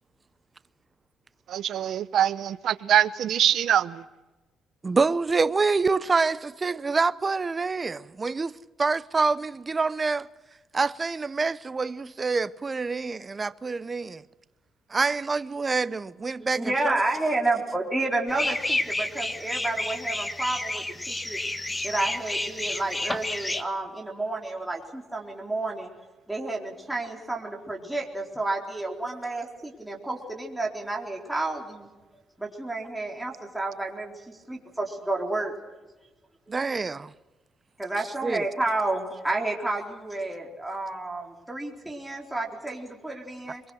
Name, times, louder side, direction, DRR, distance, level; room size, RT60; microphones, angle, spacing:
voice 1, 1.5-4.0, right 10 dB, 70° right, 0.9 m, -23 dB
voice 2, 4.8-8.5 8.8-10.3 10.7-14.2 14.9-17.0 36.5-37.1 38.2-38.4, right 4 dB, 30° right, 0.7 m, -26 dB
voice 3, 16.6-21.4 21.8-25.9 26.3-31.9 32.4-35.6 37.8-43.6, right 2 dB, 5° right, 4.2 m, -30 dB
sound 1, 18.3-23.6, left 1 dB, 15° left, 1.6 m, -30 dB
23.5 x 22.0 x 6.5 m
cardioid pair, 90°, 0 cm